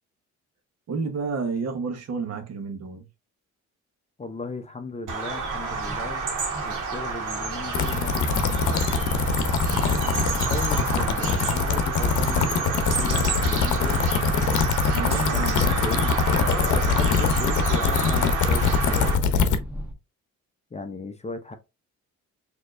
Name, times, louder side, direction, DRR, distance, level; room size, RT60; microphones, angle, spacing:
voice 1, 0.9-3.0 9.6-10.5 14.9-15.9, right 4 dB, 60° right, 1.2 m, -31 dB
voice 2, 4.2-6.2 6.6-9.1 10.4-14.1 15.1-16.1 16.4-19.7 20.7-21.6, left 3 dB, 20° left, 0.6 m, -36 dB
Bird vocalization bird call bird song, 5.1-19.1, right 4 dB, 85° right, 1.4 m, -30 dB
sound 1, 5.2-19.9, equal, 5° right, 1.2 m, -36 dB
sound 2, 7.7-19.6, left 6 dB, 80° left, 0.7 m, -23 dB
4.4 x 2.9 x 2.5 m
cardioid pair, 90°, 30 cm